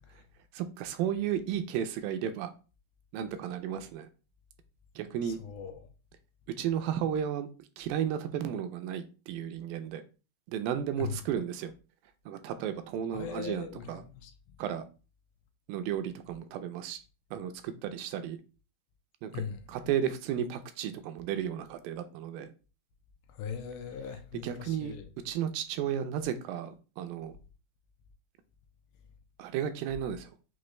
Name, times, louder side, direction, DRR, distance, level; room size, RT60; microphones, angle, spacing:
voice 1, 0.5-2.5 3.1-4.1 5.0-5.4 6.6-7.5 7.8-10.0 10.5-11.7 12.3-14.0 14.6-14.9 15.7-17.0 17.3-18.4 19.2-19.4 19.7-22.5 24.3-24.9 25.3-27.3 29.4-30.3, right 9 dB, 85° right, 2.2 m, -33 dB
voice 2, 5.2-5.9 11.0-11.2 13.1-14.3 19.3-19.6 23.3-25.1, left 7 dB, 85° left, 2.3 m, -40 dB
6.1 x 2.5 x 3.1 m
omnidirectional pair, 4.1 m